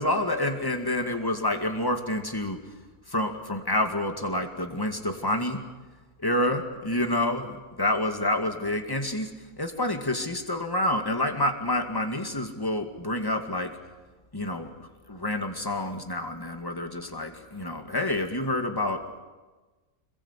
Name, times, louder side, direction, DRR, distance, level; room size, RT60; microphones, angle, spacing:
voice 1, 0.0-2.6 3.1-5.6 6.2-7.5 7.8-13.7 14.3-19.0, left 1 dB, 15° left, 5 dB, 2.1 m, -28 dB
26.5 x 21.5 x 8.3 m, 1.3 s
omnidirectional pair, 1.5 m